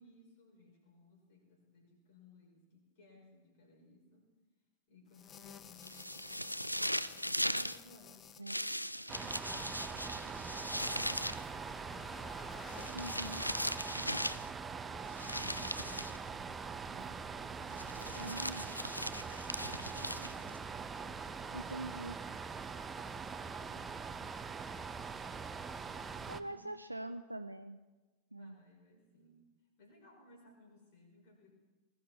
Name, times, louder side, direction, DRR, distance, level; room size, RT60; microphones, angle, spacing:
voice 1, 0.0-4.3 4.9-7.0 7.5-8.8 9.1-12.2 12.8-13.4 13.7-18.5 19.1-22.0 22.9-26.7 28.4-29.4 29.8-31.5, left 3 dB, 50° left, 0 dB, 5.8 m, -62 dB
sound 1, 5.1-8.4 9.5-12.9, left 8 dB, 25° left, 0.8 m, -56 dB
sound 2, 5.8-7.8 8.5-11.4 12.7-14.5 15.2-16.2 17.8-20.6, equal, 90° left, 0.4 m, -38 dB
sound 3, 9.1-26.4, right 5 dB, 15° right, 0.6 m, -43 dB
voice 2, 12.9-13.4 18.2-18.6 21.5-22.2 26.3-27.8 28.3-28.6, right 1 dB, 85° right, 8 dB, 0.5 m, -43 dB
20.5 x 13.0 x 4.4 m, 1.2 s
figure-of-eight pair, 90°, 0 cm